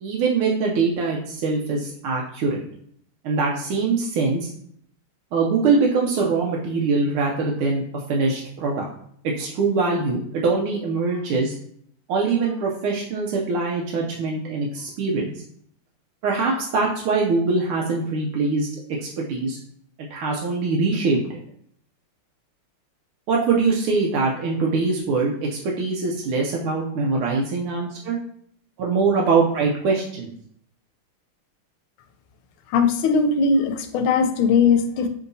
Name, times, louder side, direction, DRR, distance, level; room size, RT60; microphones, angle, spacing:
voice 1, 0.0-2.6 3.2-4.5 5.3-8.9 9.2-11.6 12.1-15.3 16.2-18.7 19.0-19.6 20.1-21.4 23.3-28.2 28.8-30.3, right 4 dB, 85° right, -1 dB, 1.6 m, -23 dB
voice 2, 32.7-35.1, left 5 dB, 80° left, 7 dB, 1.4 m, -19 dB
6.6 x 2.7 x 2.7 m, 0.65 s
omnidirectional pair, 2.3 m